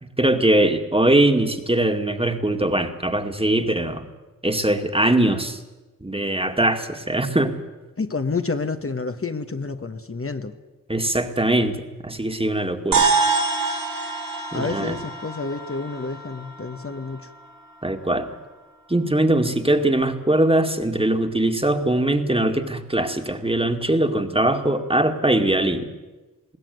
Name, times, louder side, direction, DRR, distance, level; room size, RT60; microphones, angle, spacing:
voice 1, 0.0-4.1 4.4-5.6 6.0-7.6 10.9-11.8 12.0-13.1 14.5-15.0 17.8-18.3 18.9-25.9, right 1 dB, 15° right, 6 dB, 2.2 m, -21 dB
voice 2, 8.0-10.5 14.5-17.3, left 4 dB, 40° left, 8 dB, 1.3 m, -29 dB
sound 1, 12.9-17.5, right 4 dB, 90° right, 3.3 m, -25 dB
21.0 x 16.5 x 9.4 m, 1.2 s
wide cardioid pair, 60°, 33 cm